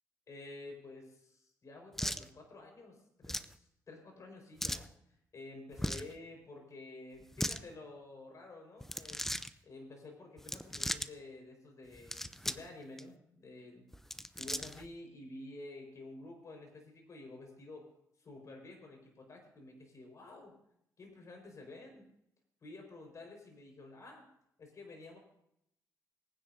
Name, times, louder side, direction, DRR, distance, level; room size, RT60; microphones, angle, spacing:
voice 1, 0.3-4.9 5.3-9.2 9.6-13.8 14.3-17.9 18.2-20.5 21.0-22.1 22.6-24.3 24.6-25.2, left 2 dB, 50° left, 2 dB, 4.8 m, -51 dB
sound 1, 2.0-2.2 3.2-3.5 4.6-4.9 5.7-6.1 7.2-7.6 8.8-9.5 10.4-11.1 11.9-12.7 13.0-13.1 13.9-14.9, left 1 dB, 5° left, 0.6 m, -38 dB
22.0 x 9.7 x 2.7 m, 0.75 s
cardioid pair, 70°, 7 cm